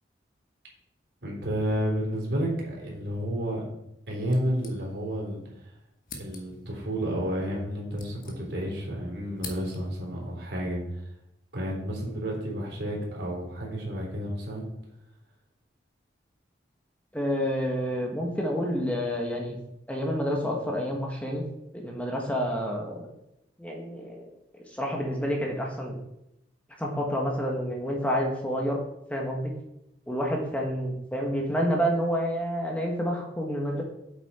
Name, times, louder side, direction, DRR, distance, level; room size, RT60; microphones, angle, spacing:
voice 1, 1.2-3.6 4.1-5.4 6.2-11.0 11.5-14.6, equal, 75° right, -2 dB, 3.6 m, -31 dB
sound 1, 4.3-5.3 5.5-5.6 6.0-6.7 7.5-8.8 9.1-10.1, left 4 dB, 50° left, 1.5 m, -45 dB
voice 2, 17.1-19.6 19.9-21.4 21.7-23.1 23.6-24.3 24.7-26.0 26.8-28.8 29.1-29.5 30.1-33.8, equal, 10° left, 0 dB, 1.3 m, -29 dB
8.4 x 7.2 x 4.3 m, 0.83 s
head